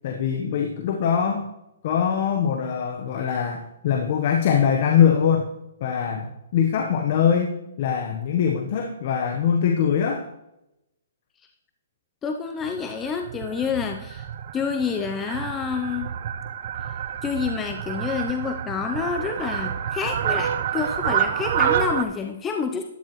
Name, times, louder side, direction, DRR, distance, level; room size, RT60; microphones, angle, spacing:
voice 1, 0.0-1.5 1.8-5.5 5.8-7.5 7.8-10.3, left 8 dB, 50° left, 3 dB, 1.1 m, -22 dB
voice 2, 12.2-14.3 14.5-16.1 16.8-22.8, left 6 dB, 15° left, 4 dB, 0.7 m, -28 dB
Fowl, 12.6-22.0, right 9 dB, 55° right, 0.8 m, -28 dB
12.5 x 10.0 x 3.2 m, 0.88 s
hypercardioid pair, 145°, 0 cm